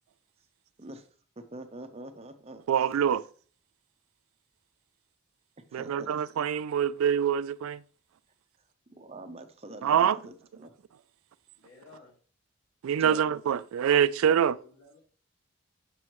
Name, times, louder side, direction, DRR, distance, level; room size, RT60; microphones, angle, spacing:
voice 1, 1.4-2.6 5.7-6.1 8.9-10.7 13.0-13.3, right 2 dB, 30° right, 0.7 m, -45 dB
voice 2, 2.7-3.2 5.7-7.8 9.8-10.2 12.8-14.6, right 8 dB, 85° right, 0.3 m, -25 dB
voice 3, 11.6-12.1 14.3-15.0, left 3 dB, 65° left, 2.5 m, -55 dB
7.6 x 6.2 x 3.0 m
head